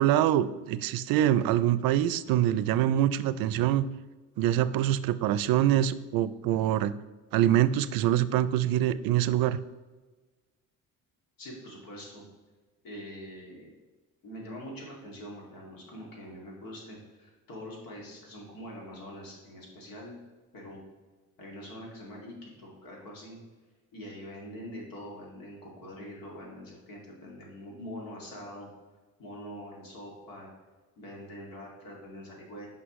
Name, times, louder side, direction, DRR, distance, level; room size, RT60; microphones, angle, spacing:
voice 1, 0.0-3.9 4.4-6.9 7.3-9.6, right 12 dB, 90° right, 15 dB, 0.5 m, -25 dB
voice 2, 11.4-12.2 12.8-13.7 14.2-20.2 20.5-20.8 21.4-23.4 23.9-28.7 29.2-30.5 31.0-32.7, equal, 80° left, -2 dB, 2.5 m, -44 dB
9.7 x 5.5 x 3.1 m, 1.3 s
cardioid pair, 130°, 34 cm